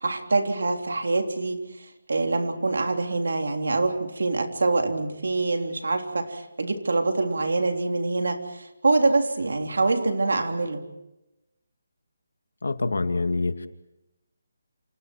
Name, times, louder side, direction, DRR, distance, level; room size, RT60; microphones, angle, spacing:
voice 1, 0.0-10.8, right 3 dB, 75° right, 5 dB, 3.5 m, -25 dB
voice 2, 12.6-13.7, left 3 dB, 90° left, 8 dB, 2.4 m, -26 dB
28.5 x 28.5 x 4.6 m, 0.93 s
hypercardioid pair, 175°, 0 cm